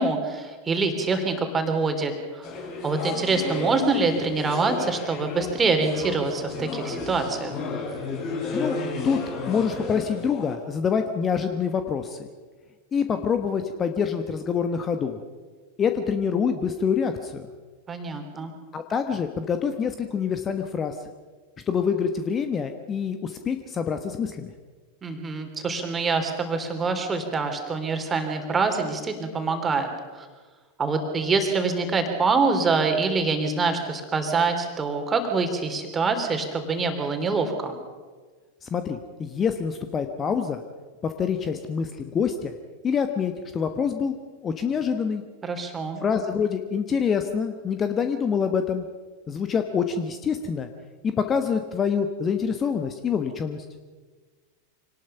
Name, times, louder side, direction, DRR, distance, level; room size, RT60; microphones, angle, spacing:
voice 1, 0.0-2.5 2.8-7.5 17.9-18.5 25.0-30.2 30.8-37.8 45.4-46.0, right 4 dB, 20° right, 6 dB, 3.3 m, -25 dB
sound 1, 2.4-10.6, left 3 dB, 40° left, 4.9 m, -33 dB
voice 2, 9.5-12.3 12.9-15.2 15.8-17.5 18.7-20.9 21.7-24.5 38.6-40.6 41.0-42.5 42.8-44.1 44.4-45.2 46.0-48.8 49.3-50.7 51.0-53.6, left 6 dB, 25° left, 8 dB, 1.2 m, -26 dB
25.5 x 19.0 x 5.7 m, 1.4 s
figure-of-eight pair, 90°, 0 cm